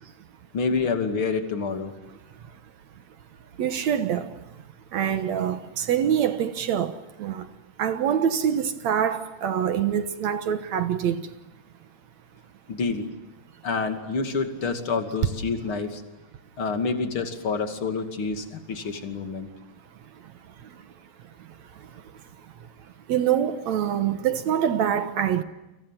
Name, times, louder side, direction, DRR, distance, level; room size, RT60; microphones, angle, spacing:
voice 1, 0.5-1.9 12.7-13.1 13.6-16.0 16.6-19.5, left 4 dB, 35° left, 2.9 m, -28 dB
voice 2, 3.6-4.6 4.9-7.5 7.8-11.3 20.1-20.9 21.2-25.4, right 9 dB, 65° right, 1.9 m, -26 dB
30.0 x 27.0 x 7.4 m
omnidirectional pair, 4.6 m